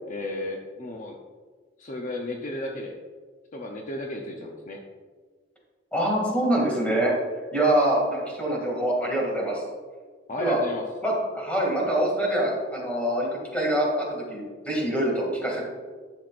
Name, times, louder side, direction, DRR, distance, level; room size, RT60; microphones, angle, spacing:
voice 1, 0.1-1.2 1.8-3.0 3.5-4.8 10.3-10.8, left 1 dB, 45° left, 1 dB, 0.7 m, -33 dB
voice 2, 5.9-7.1 7.5-9.6 10.4-10.6 11.0-15.6, right 1 dB, 5° left, -3 dB, 2.4 m, -25 dB
11.5 x 7.6 x 2.5 m, 1.5 s
head